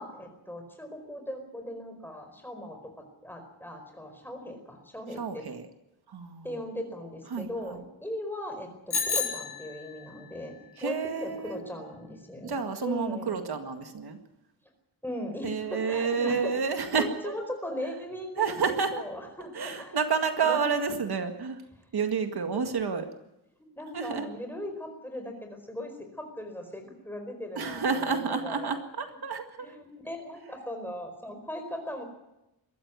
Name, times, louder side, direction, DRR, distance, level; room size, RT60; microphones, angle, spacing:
voice 1, 0.0-5.4 6.4-13.4 15.0-20.0 20.4-20.6 22.5-22.7 23.6-29.2 29.6-32.0, left 1 dB, 5° left, 4 dB, 4.7 m, -39 dB
voice 2, 5.2-5.6 6.1-6.5 7.3-7.8 10.8-11.6 12.4-14.2 15.4-17.4 18.4-19.0 19.5-21.6 21.9-23.0 23.9-24.3 27.6-29.7, right 5 dB, 75° right, 6 dB, 2.0 m, -30 dB
Bicycle bell, 8.9-10.2, left 5 dB, 80° left, 3.7 m, -31 dB
22.0 x 14.5 x 9.5 m, 0.91 s
wide cardioid pair, 175°, 39 cm